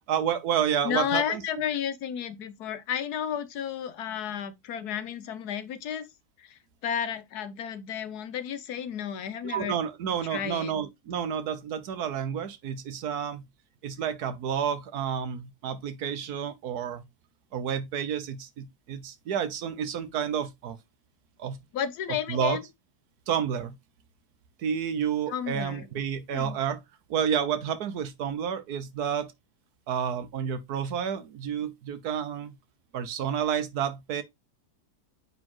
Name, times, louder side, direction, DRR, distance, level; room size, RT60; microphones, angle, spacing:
voice 1, 0.1-1.6 9.4-13.4 13.8-17.0 17.5-20.8 21.4-21.6 22.1-22.6 23.3-23.8 24.6-26.8 27.1-29.3 29.9-32.5 32.9-34.2, right 8 dB, 75° right, 1.3 m, -30 dB
voice 2, 0.8-6.1 6.8-9.8 10.3-10.7 21.7-22.6 25.3-25.8 26.3-26.6, left 9 dB, 75° left, 1.4 m, -32 dB
8.6 x 4.2 x 3.0 m
omnidirectional pair, 1.7 m